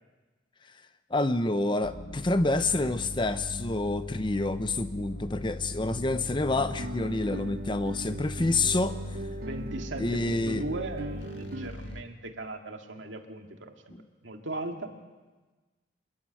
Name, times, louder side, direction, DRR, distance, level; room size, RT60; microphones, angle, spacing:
voice 1, 1.1-9.0 10.0-10.6 13.9-14.0, left 2 dB, 25° left, 11 dB, 0.7 m, -28 dB
sound 1, 1.8-12.0, left 1 dB, 80° left, 1.9 m, -39 dB
Guitar, 6.6-11.7, right 2 dB, 50° right, 0.7 m, -40 dB
voice 2, 9.4-13.7 14.2-14.9, right 2 dB, 80° right, 4 dB, 2.1 m, -38 dB
26.5 x 11.0 x 9.8 m, 1.3 s
head